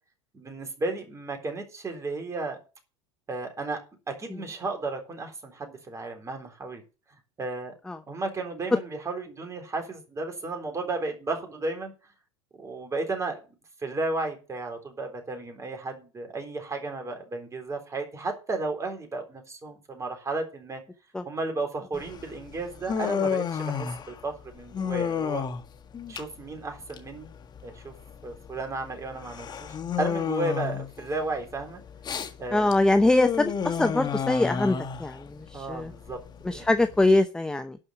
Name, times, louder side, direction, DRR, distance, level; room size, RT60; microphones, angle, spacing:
voice 1, 0.3-2.6 3.3-3.8 4.1-6.8 7.4-7.7 8.1-11.9 12.6-13.4 13.8-20.8 21.3-25.4 26.1-27.3 27.6-27.9 28.2-31.8 32.4-32.7 35.5-36.7, right 3 dB, 20° right, 4 dB, 3.8 m, -33 dB
Human voice, 21.9-37.2, left 7 dB, 30° left, 1.6 m, -32 dB
voice 2, 32.5-35.9 36.4-37.8, left 2 dB, 5° left, 9 dB, 0.7 m, -23 dB
11.5 x 5.5 x 6.9 m, 0.33 s
hypercardioid pair, 85°, 14 cm